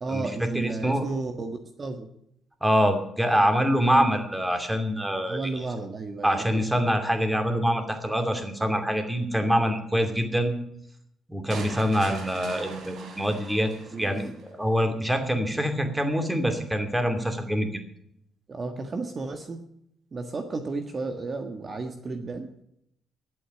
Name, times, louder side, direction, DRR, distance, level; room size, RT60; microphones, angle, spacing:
voice 1, 0.0-2.1 5.3-6.6 9.9-10.2 13.9-14.1 18.5-19.6 20.1-22.5, right 3 dB, 40° right, 6 dB, 1.5 m, -33 dB
voice 2, 0.5-1.0 2.6-5.5 6.2-10.5 11.3-13.7 14.0-17.8, equal, 10° right, 6 dB, 2.6 m, -25 dB
sound 1, 11.5-14.5, right 4 dB, 65° right, 3.2 m, -41 dB
11.5 x 8.6 x 9.9 m, 0.75 s
cardioid pair, 90°, 0 cm